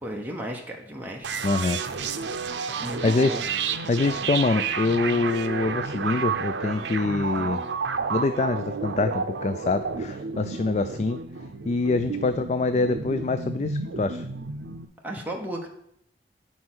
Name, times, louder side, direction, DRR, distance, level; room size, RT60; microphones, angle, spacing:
voice 1, 0.0-1.3 2.8-3.4 15.0-15.7, right 1 dB, 10° right, -1 dB, 0.9 m, -34 dB
sound 1, 1.2-14.9, right 5 dB, 80° right, 0.6 m, -31 dB
voice 2, 1.4-1.8 2.8-3.4 3.9-7.6 8.1-11.2 11.7-14.2, left 3 dB, 40° left, 10 dB, 0.3 m, -25 dB
9.5 x 4.3 x 6.1 m, 0.73 s
head